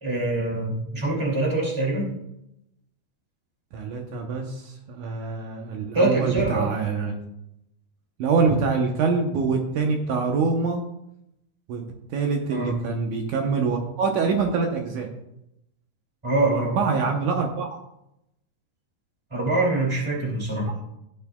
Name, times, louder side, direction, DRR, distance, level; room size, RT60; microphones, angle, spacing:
voice 1, 0.0-2.1 5.9-6.7 12.5-12.8 16.2-16.8 19.3-20.7, right 2 dB, 10° right, -2 dB, 1.6 m, -24 dB
voice 2, 3.7-7.1 8.2-10.8 11.7-11.8 12.1-15.1 16.5-17.7, right 4 dB, 70° right, 2 dB, 2.0 m, -25 dB
16.0 x 7.2 x 2.3 m, 0.83 s
omnidirectional pair, 4.4 m